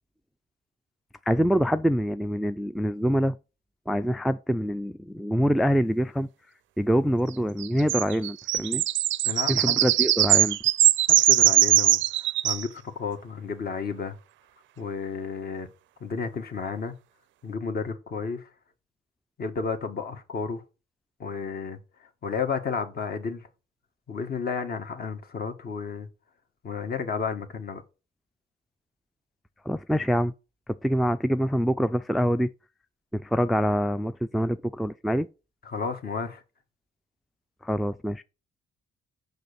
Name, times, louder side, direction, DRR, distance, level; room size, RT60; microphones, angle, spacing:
voice 1, 1.3-3.3 3.9-6.3 6.8-8.8 9.5-10.6 29.7-30.3 30.8-32.5 33.1-35.3 37.6-38.2, equal, ahead, 0.3 m, -25 dB
sound 1, 7.6-12.7, right 14 dB, 75° right, 0.4 m, -21 dB
voice 2, 9.2-9.8 11.1-14.1 14.8-15.7 16.0-16.9 17.4-18.5 19.4-20.6 21.2-23.5 24.1-26.1 26.6-27.8 35.6-36.4, left 5 dB, 50° left, 1.5 m, -32 dB
6.5 x 5.4 x 6.8 m
cardioid pair, 90°, 20 cm